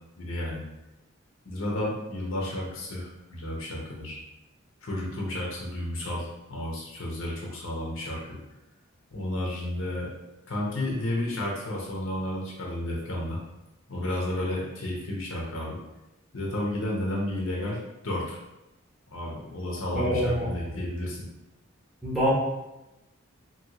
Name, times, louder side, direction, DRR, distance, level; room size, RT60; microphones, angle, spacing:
voice 1, 0.2-0.6 1.5-4.2 4.8-8.4 9.1-10.1 10.5-13.4 13.9-15.8 16.3-17.8 18.0-18.4 19.1-21.3, left 1 dB, 75° left, -3 dB, 0.8 m, -32 dB
voice 2, 19.9-20.5 22.0-22.3, equal, ahead, -9 dB, 0.8 m, -25 dB
2.9 x 2.8 x 2.9 m, 0.97 s
head